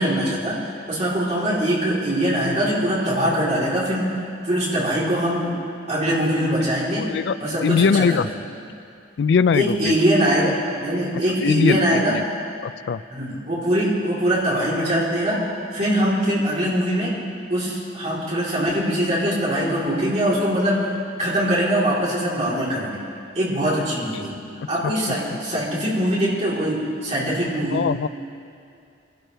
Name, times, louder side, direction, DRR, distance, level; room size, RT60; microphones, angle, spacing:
voice 1, 0.0-5.5 5.9-7.1 7.4-8.3 9.5-12.2 13.1-15.4 15.7-17.2 17.5-20.9 21.2-23.0 23.3-27.9, equal, 35° right, -7 dB, 3.7 m, -22 dB
voice 2, 7.0-7.4 7.6-8.3 9.2-9.9 11.4-11.8 12.1-12.2 12.6-13.0 25.5-25.6 27.7-28.1, left 6 dB, 65° left, 16 dB, 0.3 m, -20 dB
22.5 x 12.0 x 3.4 m, 2.5 s
head